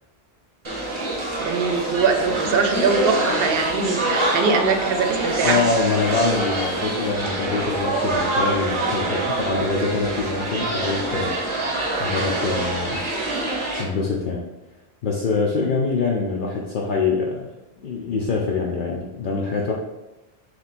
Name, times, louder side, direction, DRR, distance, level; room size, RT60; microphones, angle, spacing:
sound 1, 0.6-13.8, right 2 dB, 30° right, 0.8 m, -25 dB
voice 1, 1.4-5.6, right 5 dB, 70° right, 5 dB, 0.8 m, -22 dB
voice 2, 5.4-11.3 12.0-13.0 13.8-14.4 15.0-17.5 17.8-19.7, left 4 dB, 60° left, -2 dB, 0.7 m, -24 dB
3.2 x 3.0 x 4.1 m, 1.0 s
omnidirectional pair, 1.0 m